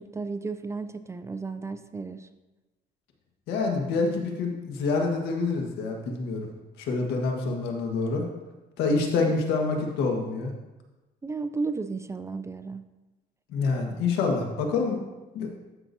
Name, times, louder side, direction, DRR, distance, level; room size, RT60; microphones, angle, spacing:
voice 1, 0.0-2.3 9.2-9.3 11.2-12.8, right 4 dB, 15° right, 11 dB, 0.4 m, -33 dB
voice 2, 3.5-6.5 6.8-8.2 8.8-10.5 13.5-15.0 15.3-15.5, left 4 dB, 85° left, 2 dB, 1.5 m, -27 dB
13.5 x 5.9 x 2.7 m, 1.1 s
cardioid pair, 110°, 17 cm